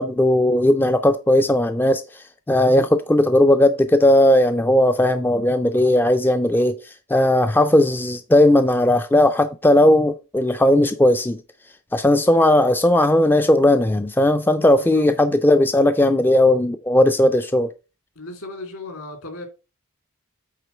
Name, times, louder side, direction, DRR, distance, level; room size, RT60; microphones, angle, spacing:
voice 1, 0.0-11.4 11.9-17.7, left 1 dB, 10° left, 0.3 m, -17 dB
voice 2, 18.2-19.5, left 2 dB, 70° left, 2.5 m, -35 dB
8.3 x 3.7 x 5.5 m
head